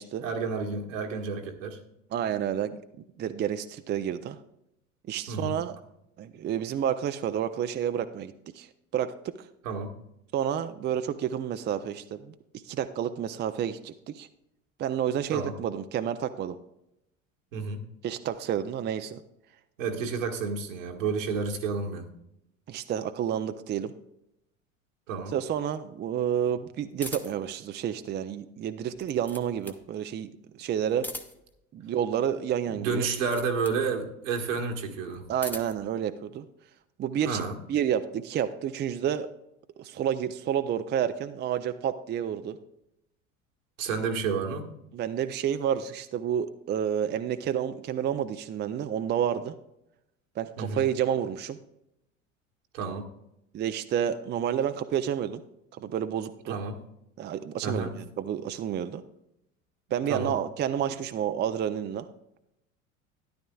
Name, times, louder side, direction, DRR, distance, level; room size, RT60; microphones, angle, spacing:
voice 1, 0.2-1.8 5.3-5.6 9.6-9.9 15.3-15.5 17.5-17.8 19.8-22.1 25.1-25.3 32.7-35.3 37.2-37.6 43.8-44.7 50.6-50.8 52.7-53.1 56.5-56.8 57.6-57.9 60.1-60.3, right 5 dB, 75° right, 2 dB, 1.7 m, -30 dB
voice 2, 2.1-2.8 3.2-4.4 5.1-5.8 6.2-8.7 8.9-9.5 10.3-12.3 12.6-14.3 14.8-16.6 18.0-19.2 22.7-23.9 25.3-31.1 31.7-33.1 35.3-36.5 37.0-37.4 37.7-39.3 39.8-42.6 44.9-49.6 50.4-51.6 53.5-55.4 55.7-56.6 57.2-59.0 59.9-62.1, right 9 dB, 25° right, 9 dB, 0.5 m, -30 dB
sound 1, 27.0-27.5 28.8-29.9 30.9-31.6 33.0-33.8 35.1-35.9, left 1 dB, 5° left, 1.0 m, -41 dB
13.0 x 10.5 x 2.3 m, 0.82 s
figure-of-eight pair, 70°, 39 cm